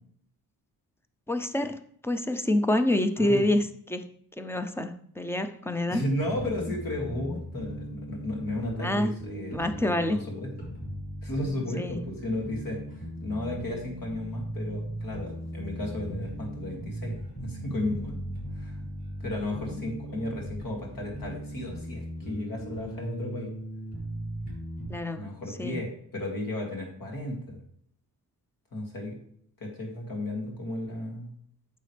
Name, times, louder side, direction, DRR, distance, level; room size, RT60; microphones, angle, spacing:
voice 1, 1.3-4.1 4.4-6.0 8.8-9.1 9.5-10.2 11.8-12.0 19.2-19.3 24.9-25.3 25.6-25.8, left 1 dB, 5° left, 9 dB, 0.5 m, -27 dB
voice 2, 5.9-9.8 10.1-10.5 11.2-12.8 13.2-17.2 17.4-18.2 18.5-18.8 19.2-23.5 25.1-27.6 28.7-29.2 29.6-31.3, left 1 dB, 60° left, 0 dB, 2.5 m, -34 dB
sound 1, 6.2-24.9, right 1 dB, 25° left, 3.7 m, -38 dB
9.2 x 6.7 x 3.3 m, 0.67 s
wide cardioid pair, 155°, 38 cm